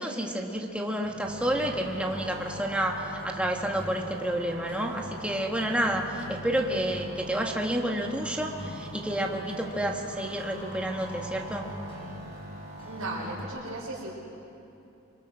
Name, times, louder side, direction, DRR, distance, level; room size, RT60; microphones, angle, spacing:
voice 1, 0.0-11.7, right 1 dB, 5° right, 0 dB, 1.7 m, -30 dB
sound 1, 1.0-13.4, left 1 dB, 25° left, 4.9 m, -45 dB
sound 2, 1.2-13.4, right 1 dB, 35° right, 5.8 m, -43 dB
voice 2, 12.9-14.1, right 2 dB, 80° right, -7 dB, 4.7 m, -35 dB
27.5 x 24.5 x 6.2 m, 2.8 s
head